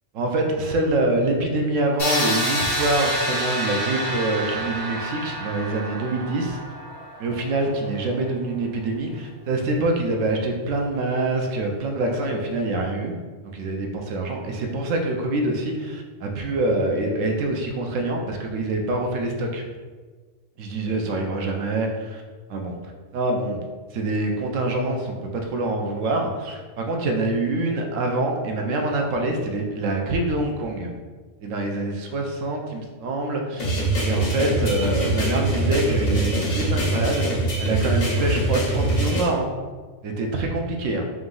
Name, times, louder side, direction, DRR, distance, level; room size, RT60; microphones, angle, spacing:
voice 1, 0.2-6.6 7.2-13.1 13.4-19.6 20.6-22.2 22.5-22.7 23.1-23.6 23.9-30.9 31.4-33.7 34.0-37.3 37.6-39.5 40.0-41.0, right 2 dB, 80° right, 2 dB, 1.0 m, -25 dB
sound 1, 2.0-7.8, right 1 dB, 25° left, 1.6 m, -28 dB
sound 2, 33.6-39.2, right 1 dB, 70° left, 1.4 m, -23 dB
3.7 x 3.0 x 3.8 m, 1.4 s
omnidirectional pair, 1.3 m